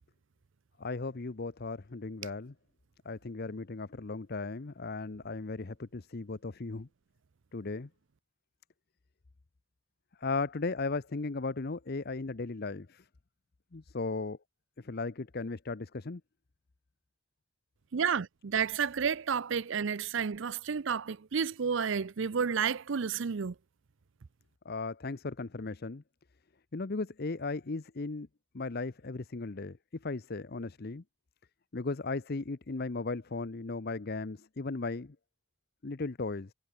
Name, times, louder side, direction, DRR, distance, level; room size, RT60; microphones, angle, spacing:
voice 1, 0.8-2.5 3.0-6.9 7.5-7.9 10.2-13.1 13.7-14.4 14.8-16.2 24.6-26.0 26.7-28.3 28.5-31.0 31.7-35.2 35.8-36.5, left 3 dB, 45° left, 0.7 m, -36 dB
voice 2, 17.9-23.5, right 6 dB, 60° right, 0.5 m, -31 dB
head